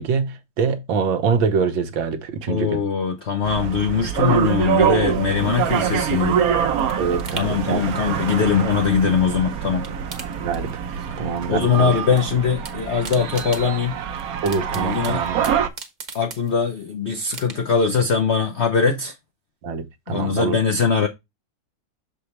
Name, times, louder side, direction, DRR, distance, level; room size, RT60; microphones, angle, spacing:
voice 1, 0.0-2.8 7.0-7.8 10.4-11.9 14.4-15.5 19.6-20.6, right 5 dB, 80° right, 1.7 m, -25 dB
voice 2, 2.5-6.4 7.4-9.9 11.0-11.1 11.5-14.0 14.7-15.2 16.1-19.1 20.1-21.1, left 6 dB, 70° left, 0.6 m, -21 dB
sound 1, 3.4-15.7, right 8 dB, 60° right, 1.0 m, -25 dB
sound 2, 6.4-9.3 9.6-11.2 11.4-12.2 12.5-16.8 17.3-17.9 18.3-18.4, right 4 dB, 30° right, 1.0 m, -40 dB
6.9 x 5.0 x 3.2 m
omnidirectional pair, 2.1 m